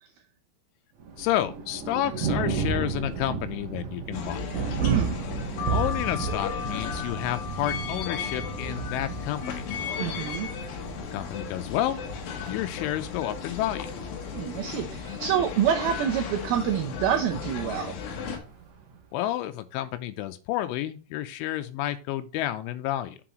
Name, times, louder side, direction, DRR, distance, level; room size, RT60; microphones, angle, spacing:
Thunder, 1.0-19.0, right 6 dB, 65° right, 2.0 m, -34 dB
voice 1, 1.2-4.4 5.7-9.7 11.1-12.0 12.5-13.9 19.1-23.2, left 13 dB, 85° left, 3.1 m, -30 dB
sound 1, 4.1-18.4, left 6 dB, 65° left, 2.6 m, -36 dB
voice 2, 4.8-5.2 10.0-10.5 14.3-18.0, right 9 dB, 90° right, 2.1 m, -27 dB
sound 2, 5.6-11.3 11.7-12.5 12.9-13.0 13.1-14.3 14.7-15.1 15.9-16.2 17.0-17.2 17.5-17.7, left 7 dB, 45° left, 2.9 m, -40 dB
7.7 x 6.9 x 3.0 m
omnidirectional pair, 5.5 m